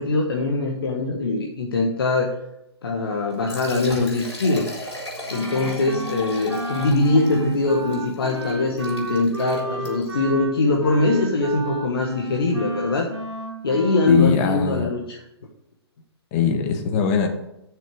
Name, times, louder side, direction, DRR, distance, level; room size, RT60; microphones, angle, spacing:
voice 1, 0.0-2.3 2.8-4.7 5.3-13.1 13.6-15.2, left 2 dB, 60° left, 0 dB, 1.5 m, -22 dB
Liquid, 3.3-10.2, left 1 dB, 85° left, 3.9 m, -37 dB
Wind instrument woodwind instrument, 5.3-14.3, right 1 dB, 85° right, 1.8 m, -32 dB
voice 2, 14.1-14.9 16.3-17.3, left 6 dB, 35° left, 5 dB, 1.5 m, -21 dB
7.4 x 6.6 x 6.3 m, 0.85 s
figure-of-eight pair, 125°, 14 cm